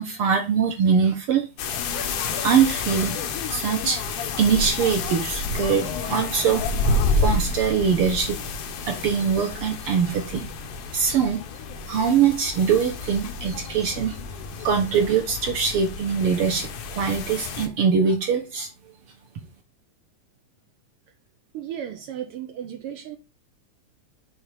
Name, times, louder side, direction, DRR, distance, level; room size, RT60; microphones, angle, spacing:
voice 1, 0.0-1.5 1.7-2.1 2.4-3.2 3.5-6.6 7.0-8.4 8.8-10.5 10.9-11.4 11.9-14.2 14.6-18.7, right 6 dB, 65° right, 1.5 m, -23 dB
sound 1, 1.6-17.7, left 3 dB, 85° left, 2.5 m, -29 dB
voice 2, 21.5-23.2, right 10 dB, 80° right, 1.2 m, -34 dB
7.0 x 3.9 x 4.8 m
omnidirectional pair, 3.5 m